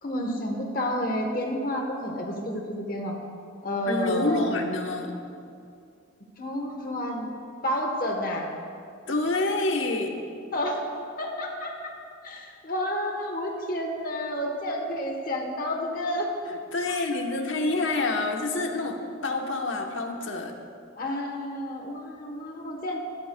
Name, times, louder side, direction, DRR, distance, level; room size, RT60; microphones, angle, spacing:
voice 1, 0.0-3.1 3.6-4.5 6.4-7.3 7.6-8.5 10.5-10.8 11.2-11.9 12.2-16.3 21.0-23.0, equal, 45° left, 1 dB, 1.2 m, -30 dB
voice 2, 3.8-5.2 9.1-10.2 16.5-20.6, left 2 dB, 75° left, 2 dB, 1.1 m, -27 dB
17.0 x 11.5 x 2.3 m, 2.4 s
head